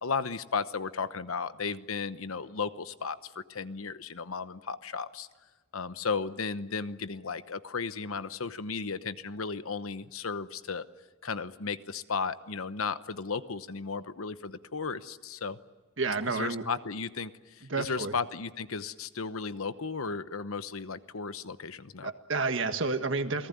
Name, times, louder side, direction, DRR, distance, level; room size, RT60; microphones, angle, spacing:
voice 1, 0.0-5.3 5.7-10.8 11.2-15.6 16.3-22.1, left 5 dB, 80° left, 13 dB, 1.0 m, -35 dB
voice 2, 16.0-16.7 17.6-18.1 22.0-23.5, right 3 dB, 60° right, 8 dB, 1.6 m, -30 dB
28.5 x 19.0 x 9.4 m, 1.3 s
head